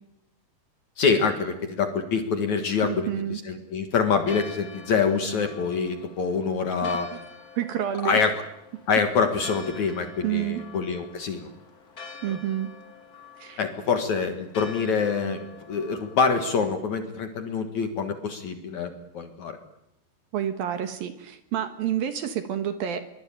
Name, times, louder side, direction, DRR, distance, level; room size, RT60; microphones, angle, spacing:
voice 1, 1.0-7.1 8.0-8.3 8.9-11.5 12.3-12.4 13.6-19.6, left 5 dB, 55° left, 6 dB, 2.5 m, -26 dB
voice 2, 2.8-3.4 6.8-6.9 7.6-8.2 10.2-10.6 12.2-12.7 13.4-13.6 20.3-23.0, right 10 dB, 65° right, 9 dB, 2.9 m, -29 dB
Church bell, 4.2-16.8, left 5 dB, 25° left, 2.4 m, -46 dB
23.5 x 23.5 x 9.0 m, 0.84 s
omnidirectional pair, 5.0 m